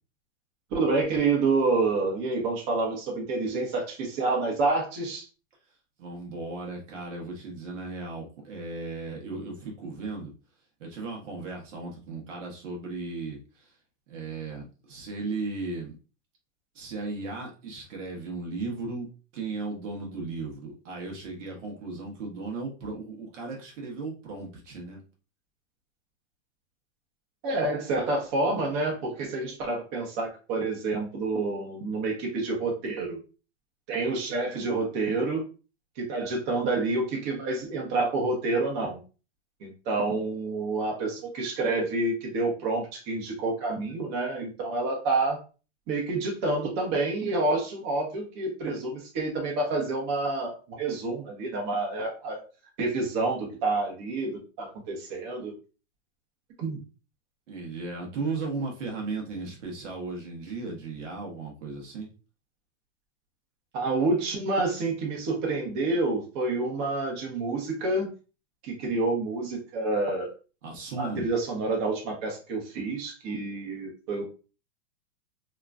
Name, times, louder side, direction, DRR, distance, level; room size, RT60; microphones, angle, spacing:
voice 1, 0.7-5.2 27.4-33.2 33.9-35.4 36.0-39.0 39.6-45.4 45.9-52.4 52.8-55.5 56.6-56.8 63.7-68.1 68.6-70.3 71.0-74.2, right 3 dB, 40° right, -1 dB, 1.0 m, -28 dB
voice 2, 6.0-10.3 10.8-13.7 14.1-15.9 16.7-19.1 19.3-25.0 57.5-62.1 70.6-71.3, right 3 dB, 75° right, 0 dB, 1.1 m, -36 dB
2.9 x 2.5 x 2.3 m, 0.34 s
hypercardioid pair, 130°, 38 cm